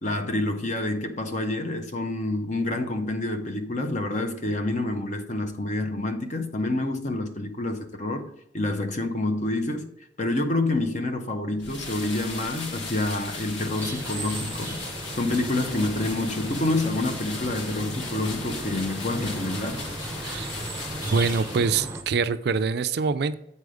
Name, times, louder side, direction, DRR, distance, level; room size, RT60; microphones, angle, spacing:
voice 1, 0.0-8.3 8.5-9.9 10.2-14.8 15.1-19.8, left 2 dB, 40° left, 0.8 m, -28 dB
sound 1, 11.6-22.0, left 3 dB, 85° left, 1.5 m, -37 dB
sound 2, 13.8-22.0, right 2 dB, 15° right, 0.7 m, -36 dB
voice 2, 20.2-20.6 21.1-23.3, right 5 dB, 55° right, 0.4 m, -25 dB
8.1 x 4.2 x 4.9 m
head